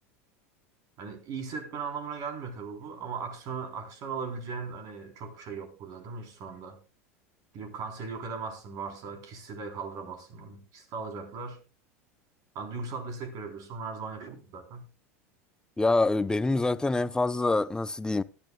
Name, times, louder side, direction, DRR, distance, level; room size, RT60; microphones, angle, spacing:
voice 1, 1.0-6.8 7.5-11.6 12.6-14.8, right 5 dB, 50° right, 3.6 m, -38 dB
voice 2, 15.8-18.2, left 2 dB, 10° left, 0.6 m, -25 dB
19.5 x 10.5 x 2.2 m
hypercardioid pair, 100°, 8 cm